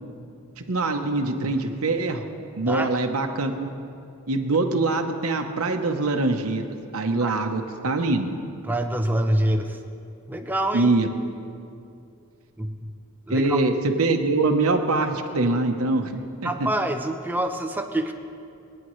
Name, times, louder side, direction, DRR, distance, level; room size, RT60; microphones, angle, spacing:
voice 1, 0.6-2.3 2.6-3.7 4.3-6.7 6.9-8.3 10.7-11.1 13.3-13.7 14.0-16.5, right 2 dB, 75° right, 4 dB, 0.9 m, -23 dB
voice 2, 8.6-9.8 10.3-10.9 12.6-12.9 13.3-13.6 16.4-18.1, right 1 dB, 10° right, 5 dB, 0.7 m, -26 dB
27.5 x 9.9 x 3.2 m, 2.6 s
head